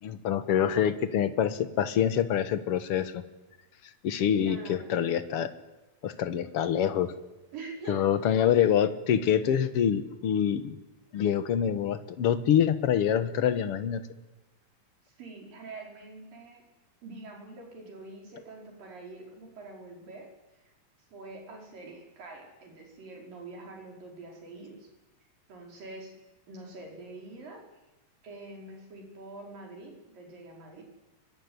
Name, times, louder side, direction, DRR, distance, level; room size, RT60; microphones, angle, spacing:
voice 1, 0.0-3.2 4.0-5.5 6.0-7.1 7.9-10.8 11.1-14.0, left 9 dB, 55° left, 11 dB, 1.7 m, -26 dB
voice 2, 4.4-4.9 7.5-8.1 15.0-16.6 17.0-20.3 20.6-20.7 21.1-24.9 25.5-26.2 26.5-27.6 28.2-30.8, right 3 dB, 70° right, 1 dB, 6.7 m, -45 dB
24.0 x 22.5 x 9.7 m, 1.1 s
omnidirectional pair, 4.0 m